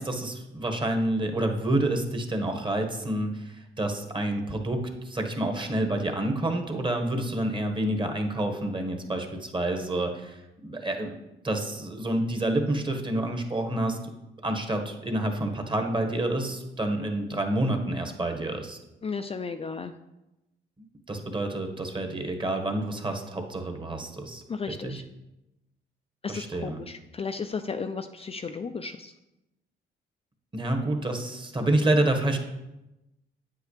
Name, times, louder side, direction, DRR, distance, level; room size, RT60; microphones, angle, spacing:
voice 1, 0.0-11.2 11.4-14.0 14.4-18.8 21.1-25.0 26.3-26.8 30.5-32.4, right 1 dB, 25° right, 3 dB, 1.5 m, -28 dB
voice 2, 19.0-19.9 24.5-25.0 26.2-29.1, left 5 dB, 30° left, 7 dB, 0.5 m, -34 dB
9.4 x 8.1 x 3.3 m, 0.94 s
cardioid pair, 90°, 20 cm